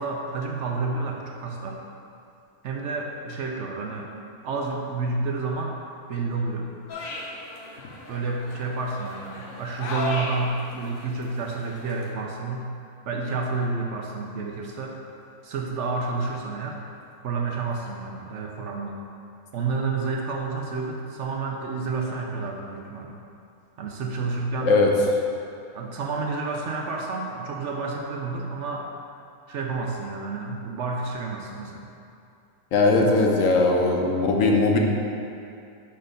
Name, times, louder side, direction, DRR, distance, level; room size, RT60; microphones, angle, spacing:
voice 1, 0.0-1.8 2.6-4.1 4.4-5.8 6.1-6.7 8.1-12.7 13.1-15.0 15.4-16.8 17.2-19.0 19.5-23.2 23.8-24.7 25.7-28.9 29.5-31.9 33.0-33.1, right 3 dB, 65° right, 1 dB, 0.8 m, -30 dB
sound 1, 6.9-12.1, left 2 dB, 50° left, 0.7 m, -36 dB
voice 2, 24.6-24.9 32.7-34.8, left 3 dB, 70° left, 1 dB, 1.0 m, -19 dB
5.2 x 4.4 x 5.0 m, 2.5 s
omnidirectional pair, 1.5 m